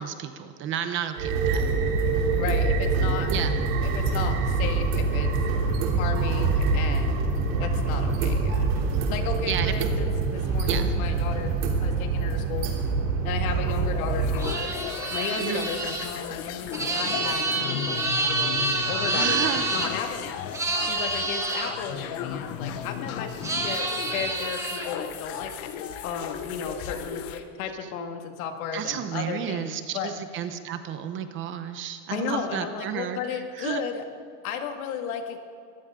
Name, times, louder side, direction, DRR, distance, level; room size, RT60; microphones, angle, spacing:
voice 1, 0.0-1.6 3.3-3.6 9.5-9.7 10.7-10.9 15.4-15.7 19.1-19.7 28.7-33.8, right 9 dB, 30° right, 9 dB, 0.8 m, -32 dB
sound 1, 1.2-14.5, right 4 dB, 65° right, 3.3 m, -25 dB
voice 2, 2.0-3.3 3.8-5.3 6.0-7.2 7.6-8.7 9.1-12.7 13.2-14.7 15.1-19.5 19.7-20.3 20.8-25.7 26.0-30.2 32.1-34.0 34.4-35.4, left 7 dB, 80° left, 5 dB, 2.1 m, -34 dB
sound 2, 12.4-27.4, left 8 dB, 35° left, 0.9 m, -36 dB
sound 3, 14.4-19.9 20.5-21.7 23.4-24.9, right 3 dB, 5° right, 1.3 m, -28 dB
22.0 x 15.0 x 3.8 m, 2.5 s
supercardioid pair, 160°, 41 cm